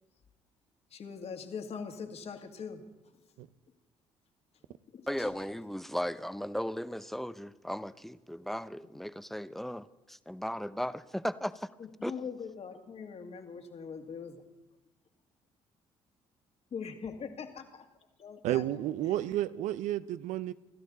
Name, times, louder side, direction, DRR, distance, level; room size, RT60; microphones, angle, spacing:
voice 1, 0.9-2.8 4.9-5.3 11.8-14.4 16.7-17.8 18.2-18.6, left 6 dB, 55° left, 2.2 m, -42 dB
voice 2, 5.1-11.7 12.0-12.1, equal, ahead, 0.8 m, -36 dB
voice 3, 18.4-20.5, right 13 dB, 75° right, 0.7 m, -31 dB
27.0 x 12.5 x 4.1 m
hypercardioid pair, 55°, 13 cm